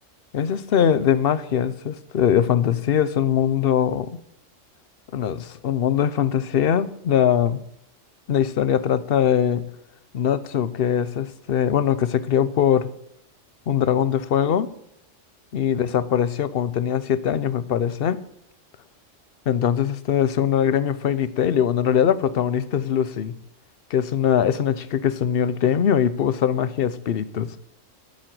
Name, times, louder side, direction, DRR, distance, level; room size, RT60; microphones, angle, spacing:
voice 1, 0.3-4.1 5.1-7.6 8.3-9.6 10.1-12.9 13.7-14.7 15.5-18.2 19.5-23.3 23.9-27.6, left 9 dB, 55° left, 15 dB, 0.9 m, -21 dB
13.0 x 7.5 x 7.7 m, 0.72 s
omnidirectional pair, 1.3 m